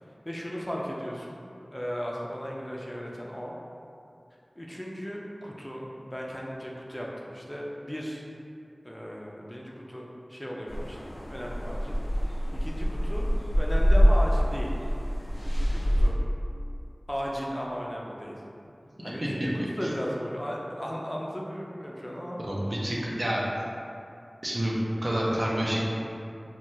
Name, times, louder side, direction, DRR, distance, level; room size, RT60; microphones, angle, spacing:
voice 1, 0.3-1.4 1.7-3.6 4.6-8.2 8.8-12.3 12.6-14.7 15.5-16.2 17.1-18.4 19.0-22.4, equal, 15° left, -3 dB, 0.4 m, -36 dB
sound 1, 10.7-16.1, equal, 80° left, 0.4 m, -25 dB
voice 2, 22.4-23.4 24.4-25.8, equal, 55° right, -5 dB, 0.5 m, -28 dB
3.1 x 2.2 x 2.7 m, 2.6 s
wide cardioid pair, 50°, 0 cm